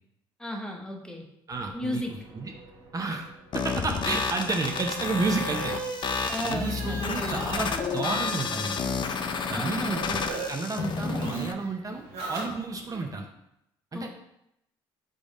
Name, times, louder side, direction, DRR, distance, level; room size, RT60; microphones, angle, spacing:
voice 1, 0.4-1.3 1.7-2.2 6.3-7.5 9.5-10.4 11.0-11.4 13.9-14.1, left 1 dB, 5° left, 2 dB, 0.9 m, -35 dB
voice 2, 1.5-2.0 2.3-2.5 2.9-5.8 6.5-8.8 9.5-10.2 10.5-13.3 13.9-14.1, right 3 dB, 35° right, 3 dB, 0.6 m, -31 dB
sound 1, 1.5-13.1, equal, 55° right, 1.6 m, -55 dB
sound 2, 3.5-11.5, left 5 dB, 45° left, 0.4 m, -31 dB
sound 3, 3.9-10.5 10.8-13.0, right 4 dB, 75° right, 1.4 m, -39 dB
3.7 x 3.4 x 4.0 m, 0.80 s
supercardioid pair, 75°, 11 cm